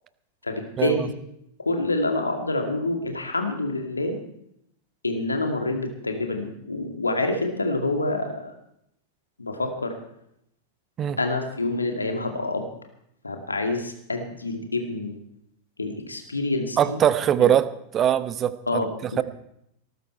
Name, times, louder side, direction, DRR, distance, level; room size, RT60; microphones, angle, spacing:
voice 1, 0.4-1.1 1.6-4.2 5.0-8.5 9.4-10.0 11.2-12.7 13.2-15.1 15.8-17.0 17.4-17.5 18.7-19.2, left 2 dB, 80° left, 4 dB, 2.2 m, -27 dB
voice 2, 16.8-17.7 17.9-18.8 19.2-19.3, right 10 dB, 30° right, 15 dB, 0.8 m, -21 dB
19.0 x 13.5 x 4.5 m, 0.75 s
figure-of-eight pair, 90°, 0 cm